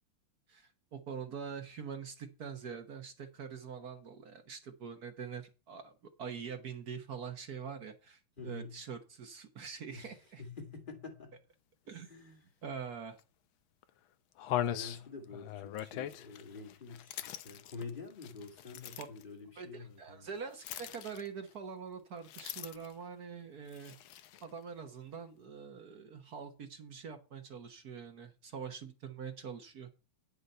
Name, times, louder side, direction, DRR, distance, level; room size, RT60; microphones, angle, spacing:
voice 1, 0.5-5.9 6.2-10.4 11.9-12.1 12.6-13.2 19.0-19.1 19.6-23.9 24.4-29.9, right 6 dB, 50° right, 1.5 m, -44 dB
voice 2, 8.4-8.7 9.9-10.1 10.4-11.4 12.1-12.4 14.6-20.3, left 4 dB, 25° left, 1.7 m, -47 dB
sound 1, 13.2-13.3 13.8-13.9 14.4-19.2 20.6-21.5 22.2-23.0 23.7-24.5, left 11 dB, 75° left, 1.5 m, -40 dB
9.9 x 6.7 x 5.5 m
omnidirectional pair, 2.4 m